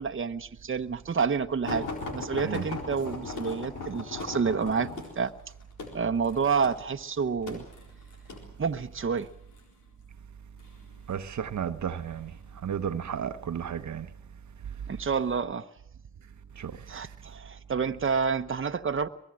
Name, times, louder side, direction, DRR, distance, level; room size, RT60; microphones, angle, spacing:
voice 1, 0.0-1.9 2.1-4.9 5.2-5.3 5.9-7.6 8.6-9.3 14.9-15.7 16.9-19.1, right 5 dB, 45° right, 1.0 m, -29 dB
sound 1, 1.6-8.5 9.2-9.7 10.6-11.2 12.0-12.2 12.5-12.6, left 4 dB, 90° left, 4.2 m, -38 dB
voice 2, 11.1-14.1 16.6-16.9, right 8 dB, 65° right, 0.9 m, -33 dB
23.5 x 20.5 x 7.6 m
supercardioid pair, 45°, 30 cm